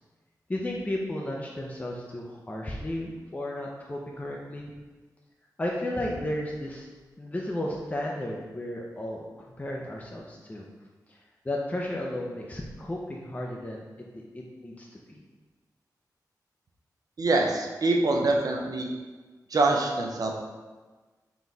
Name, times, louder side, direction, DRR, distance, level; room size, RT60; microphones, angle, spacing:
voice 1, 0.5-4.7 5.6-6.9 7.2-9.3 9.6-10.6 11.1-11.2 11.4-14.1 14.3-15.2, left 1 dB, 20° left, -2 dB, 0.5 m, -33 dB
voice 2, 17.2-18.9 19.5-20.4, right 2 dB, 60° right, 1 dB, 0.6 m, -25 dB
4.0 x 3.0 x 3.9 m, 1.3 s
wide cardioid pair, 85°, 7 cm